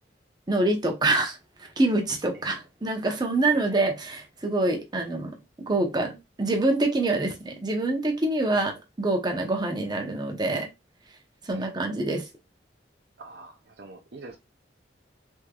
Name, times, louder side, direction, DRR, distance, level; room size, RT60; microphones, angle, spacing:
voice 1, 0.5-1.4 1.8-5.3 5.6-6.1 6.4-8.7 9.0-10.7 11.5-12.2, right 2 dB, 25° right, 0.7 m, -25 dB
voice 2, 13.2-14.4, right 3 dB, 60° right, 0.6 m, -45 dB
3.6 x 3.1 x 2.3 m
head